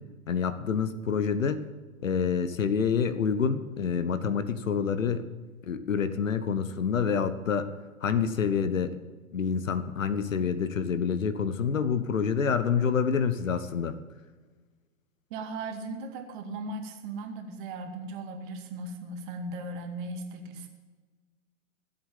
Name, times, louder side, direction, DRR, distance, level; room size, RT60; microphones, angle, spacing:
voice 1, 0.3-1.6 2.0-5.2 5.7-7.7 8.0-9.0 9.3-13.9, left 6 dB, 65° left, 12 dB, 1.2 m, -27 dB
voice 2, 15.3-20.7, right 2 dB, 35° right, 4 dB, 2.1 m, -37 dB
16.5 x 8.0 x 7.4 m, 1.3 s
figure-of-eight pair, 110°, 42 cm